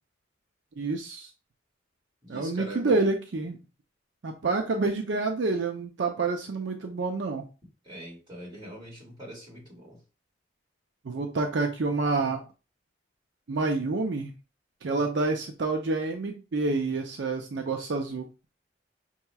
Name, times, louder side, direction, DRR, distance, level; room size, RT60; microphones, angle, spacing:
voice 1, 0.8-1.3 2.3-3.6 4.2-7.5 11.0-12.4 13.5-14.3 14.8-18.3, right 3 dB, 70° right, 3 dB, 0.5 m, -28 dB
voice 2, 2.2-3.0 7.8-10.0, equal, 25° right, -5 dB, 2.3 m, -42 dB
5.5 x 2.9 x 2.3 m, 0.33 s
head